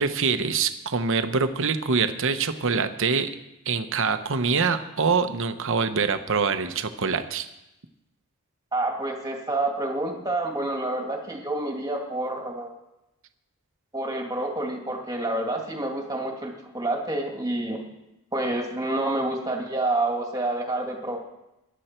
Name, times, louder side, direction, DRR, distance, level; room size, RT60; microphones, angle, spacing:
voice 1, 0.0-3.3 3.7-7.5, right 5 dB, 60° right, 9 dB, 0.9 m, -24 dB
voice 2, 8.7-12.7 13.9-17.8 18.3-21.2, right 2 dB, 15° right, 1 dB, 2.2 m, -28 dB
18.5 x 11.0 x 4.5 m, 0.92 s
head